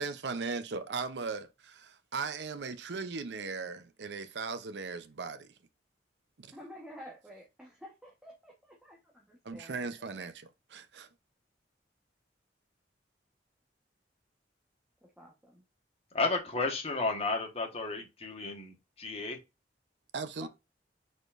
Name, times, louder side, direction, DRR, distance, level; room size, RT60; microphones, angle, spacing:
voice 1, 0.0-5.5 6.4-6.5 9.4-11.1 20.1-20.5, right 4 dB, 70° right, 0.6 m, -38 dB
voice 2, 6.5-10.3 15.2-15.6 20.4-20.5, equal, 5° right, 1.0 m, -51 dB
voice 3, 16.1-19.4, left 3 dB, 35° left, 1.2 m, -33 dB
4.9 x 4.3 x 2.5 m
head